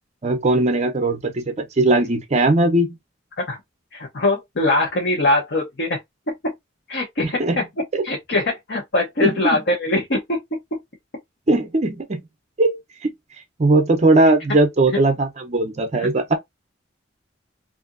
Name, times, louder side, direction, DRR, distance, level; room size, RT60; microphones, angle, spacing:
voice 1, 0.2-3.0 7.4-7.6 7.9-8.1 9.2-9.6 11.5-12.2 12.6-13.1 13.6-16.3, right 2 dB, 35° right, 0.5 m, -19 dB
voice 2, 4.1-6.0 6.4-6.5 6.9-7.6 8.0-10.4 10.7-10.8 16.0-16.1, left 2 dB, 60° left, 0.9 m, -22 dB
2.7 x 2.5 x 2.5 m
head